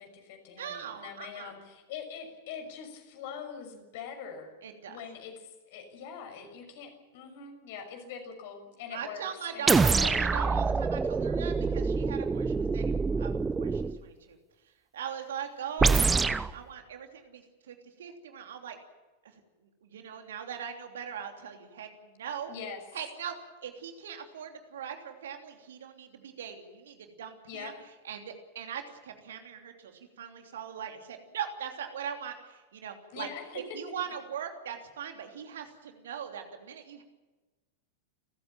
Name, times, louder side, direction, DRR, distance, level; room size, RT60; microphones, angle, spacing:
voice 1, 0.0-4.5 4.9-9.2 9.5-10.2 22.5-22.8 27.5-27.8 33.1-33.6, left 7 dB, 50° left, 5 dB, 6.3 m, -43 dB
voice 2, 0.6-1.5 4.6-5.0 8.9-14.4 14.9-16.2 16.5-18.8 19.2-19.4 19.8-22.5 22.9-27.7 28.0-33.3 33.5-37.0, right 8 dB, 60° right, 4 dB, 3.1 m, -40 dB
sound 1, 9.7-14.0 15.8-16.5, right 4 dB, 15° right, 1.0 m, -26 dB
29.5 x 15.0 x 7.5 m, 1.2 s
figure-of-eight pair, 90°, 0 cm